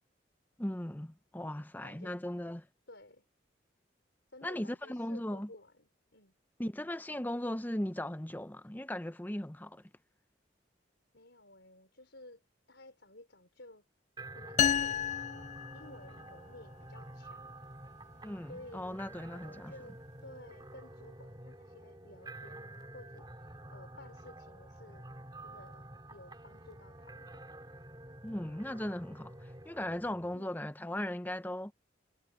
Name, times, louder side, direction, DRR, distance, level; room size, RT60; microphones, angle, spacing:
voice 1, 0.6-2.7 4.4-5.5 6.6-9.8 18.2-19.7 28.2-31.7, left 1 dB, 10° left, 0.7 m, -38 dB
voice 2, 1.8-2.2 2.9-3.2 4.3-6.3 11.1-12.4 12.7-13.9 14.3-15.0 15.3-15.4 15.7-17.5 18.5-19.0 19.3-25.1 25.4-27.4 30.3-30.7, left 2 dB, 70° left, 4.1 m, -54 dB
sound 1, 14.2-30.4, right 1 dB, 25° right, 2.7 m, -49 dB
sound 2, 14.6-16.4, left 8 dB, 35° left, 0.3 m, -31 dB
head